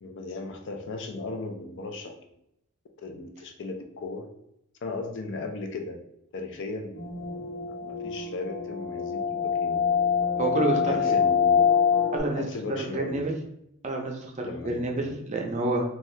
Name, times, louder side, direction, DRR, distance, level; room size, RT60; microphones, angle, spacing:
voice 1, 0.0-2.1 3.0-4.3 4.8-6.0 6.3-9.9 10.8-11.7 12.4-13.3 14.4-15.2, left 3 dB, 55° left, 4 dB, 0.4 m, -37 dB
sound 1, 7.0-12.2, left 7 dB, 80° left, 1.1 m, -25 dB
voice 2, 10.4-11.1 12.1-12.5 12.8-13.4 13.8-15.8, right 2 dB, 35° right, 1 dB, 0.5 m, -28 dB
2.7 x 2.3 x 3.1 m, 0.79 s
head